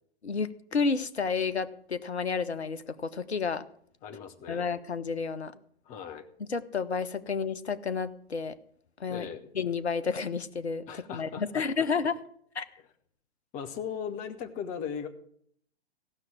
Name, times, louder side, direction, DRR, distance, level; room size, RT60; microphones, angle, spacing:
voice 1, 0.2-3.6 4.5-5.5 6.5-8.5 9.0-9.3 9.6-12.1 12.6-12.7, left 5 dB, 80° left, 13 dB, 0.8 m, -31 dB
voice 2, 4.0-4.7 5.8-6.3 9.1-9.5 10.9-11.9 13.5-15.1, left 7 dB, 25° left, 8 dB, 1.0 m, -38 dB
15.5 x 5.9 x 7.3 m, 0.64 s
figure-of-eight pair, 110°, 32 cm